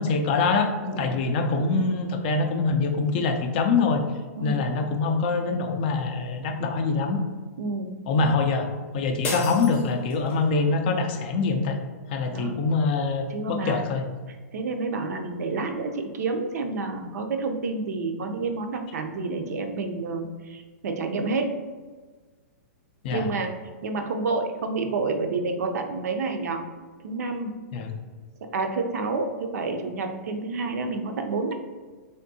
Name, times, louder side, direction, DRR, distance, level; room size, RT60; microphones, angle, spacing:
voice 1, 0.0-4.0 4.4-7.2 8.1-11.8 12.1-14.1 23.0-23.3 27.7-27.9, left 4 dB, 40° left, 5 dB, 0.3 m, -24 dB
voice 2, 4.4-4.7 7.6-7.9 12.3-12.6 13.3-13.9 14.3-21.5 23.1-23.5 23.8-26.6 27.0-27.5 28.4-31.5, right 3 dB, 75° right, 5 dB, 0.5 m, -29 dB
sound 1, 9.2-10.5, left 2 dB, 15° left, 0.7 m, -33 dB
3.5 x 2.6 x 2.6 m, 1.4 s
hypercardioid pair, 155°, 9 cm